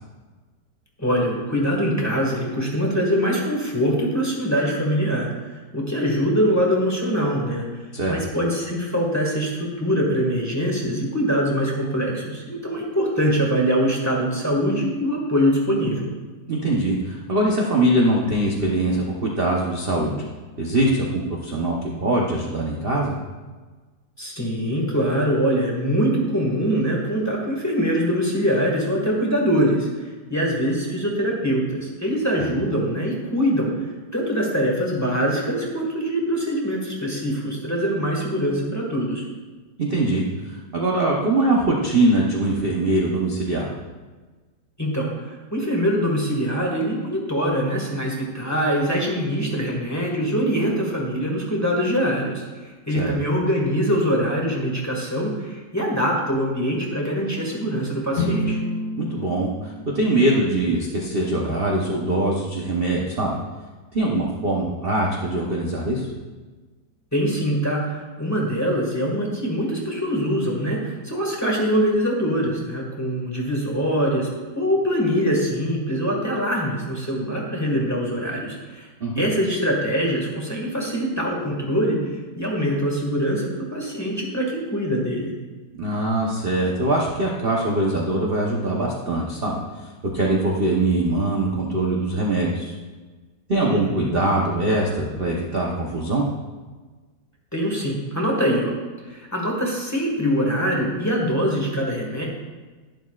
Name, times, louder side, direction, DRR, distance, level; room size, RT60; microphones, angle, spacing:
voice 1, 1.0-5.3 5.7-16.1 24.2-29.9 30.3-33.7 34.1-39.2 44.8-45.1 45.5-58.6 67.1-74.3 74.5-78.9 79.1-85.3 93.7-94.1 97.5-98.7 99.0-102.3, equal, 10° left, -2 dB, 1.4 m, -23 dB
voice 2, 16.5-20.2 20.6-23.1 32.4-32.5 39.8-43.7 52.9-53.1 59.0-63.4 63.9-66.1 79.0-79.2 85.7-89.6 90.0-92.7 93.5-96.2, right 1 dB, 40° right, -2 dB, 0.8 m, -22 dB
sound 1, 58.1-62.2, left 1 dB, 85° left, 2.0 m, -31 dB
11.5 x 10.5 x 2.4 m, 1.3 s
omnidirectional pair, 2.2 m